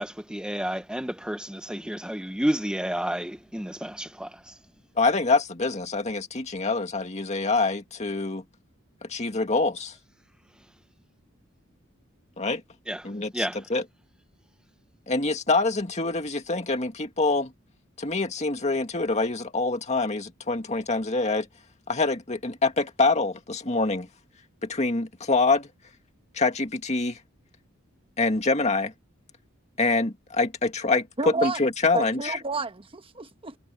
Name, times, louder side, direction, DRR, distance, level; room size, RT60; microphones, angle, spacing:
voice 1, 0.0-4.6 12.9-13.1 13.3-13.6, equal, 5° right, 1.0 m, -30 dB
voice 2, 5.0-8.4 9.0-9.9 12.4-12.6 13.0-13.5 13.7-13.8 15.1-17.5 18.0-21.5 21.9-24.1 24.6-25.7 26.3-27.2 28.2-28.9 29.8-32.4, left 3 dB, 35° left, 2.2 m, -25 dB
voice 3, 31.2-31.6 31.9-33.6, right 3 dB, 25° right, 1.2 m, -30 dB
head